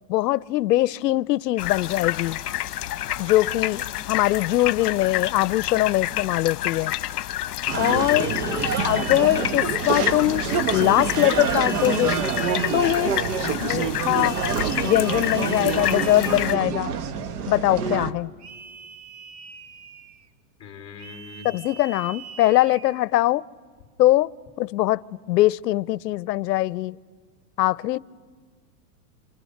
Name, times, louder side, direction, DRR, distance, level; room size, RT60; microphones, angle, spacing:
voice 1, 0.1-2.4 3.2-6.9 7.8-8.3 8.8-12.2 12.7-13.1 13.6-14.4 14.8-16.9 17.5-18.3 21.4-23.4 24.0-24.3 24.6-27.0 27.6-28.0, left 16 dB, 85° left, 0.7 m, -22 dB
sound 1, 1.6-16.5, left 14 dB, 70° left, 1.1 m, -29 dB
sound 2, 6.7-7.0 7.7-10.1 10.7-13.4 14.1-16.9 18.4-20.3 21.0-23.1, right 5 dB, 45° right, 1.3 m, -42 dB
sound 3, 7.7-18.1, right 6 dB, 70° right, 1.4 m, -27 dB
voice 2, 8.1-8.7 13.3-13.9 14.6-14.7 20.6-21.5, left 7 dB, 10° left, 3.1 m, -38 dB
29.5 x 27.5 x 6.5 m
supercardioid pair, 175°, 48 cm